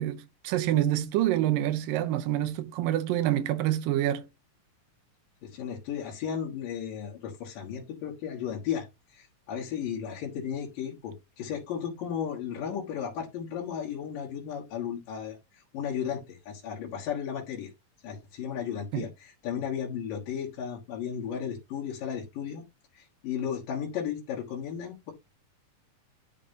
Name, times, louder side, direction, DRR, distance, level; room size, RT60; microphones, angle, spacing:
voice 1, 0.0-4.3 18.9-19.1, right 13 dB, 85° right, 2.5 m, -27 dB
voice 2, 5.4-17.7 18.0-22.7 22.9-25.1, left 8 dB, 75° left, 3.1 m, -35 dB
11.0 x 5.2 x 2.8 m
omnidirectional pair, 3.9 m